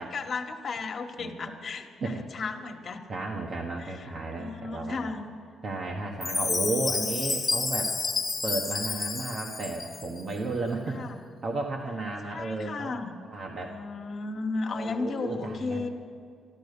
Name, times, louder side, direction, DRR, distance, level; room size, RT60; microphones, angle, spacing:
voice 1, 0.0-3.0 3.8-5.3 6.9-7.0 10.9-11.2 12.2-13.1 13.6-15.9, left 3 dB, 50° left, 5 dB, 1.4 m, -34 dB
voice 2, 1.2-1.6 2.0-2.2 3.1-5.1 5.6-8.0 8.4-11.0 11.4-12.9 13.2-13.8 14.6-15.9, right 2 dB, 50° right, 0 dB, 1.4 m, -33 dB
Chime, 6.2-10.2, left 4 dB, 30° left, 1.4 m, -30 dB
13.5 x 13.0 x 6.8 m, 2.3 s
cardioid pair, 90°, 0 cm